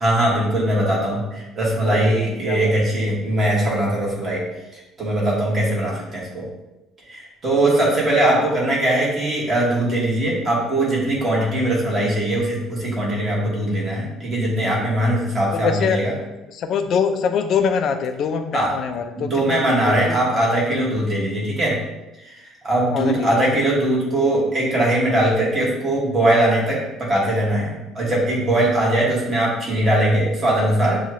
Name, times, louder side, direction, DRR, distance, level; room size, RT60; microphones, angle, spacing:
voice 1, 0.0-4.4 5.0-6.5 7.1-16.1 18.5-18.7 19.2-21.8 22.2-22.3 22.6-31.0, right 1 dB, 25° right, -5 dB, 1.5 m, -20 dB
voice 2, 1.8-3.0 8.3-8.5 15.5-16.0 16.5-20.2 22.9-23.6, left 6 dB, 50° left, 7 dB, 0.4 m, -24 dB
6.7 x 2.3 x 3.0 m, 0.99 s
cardioid pair, 150°, 0 cm